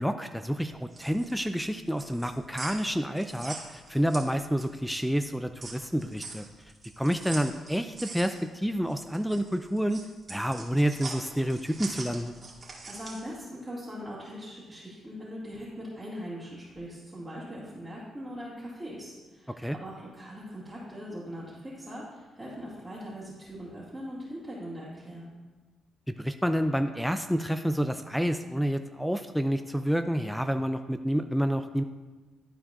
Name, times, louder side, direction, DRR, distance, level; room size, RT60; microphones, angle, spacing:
voice 1, 0.0-6.4 7.0-10.0 10.3-12.3 19.6-19.8 26.2-31.8, equal, ahead, 9 dB, 0.4 m, -29 dB
sound 1, 0.9-4.9 5.2-13.3, right 3 dB, 40° right, 2.0 m, -43 dB
voice 2, 12.8-25.3, equal, 15° right, -9 dB, 2.2 m, -41 dB
12.0 x 4.5 x 2.5 m, 1.3 s
supercardioid pair, 55°, 0 cm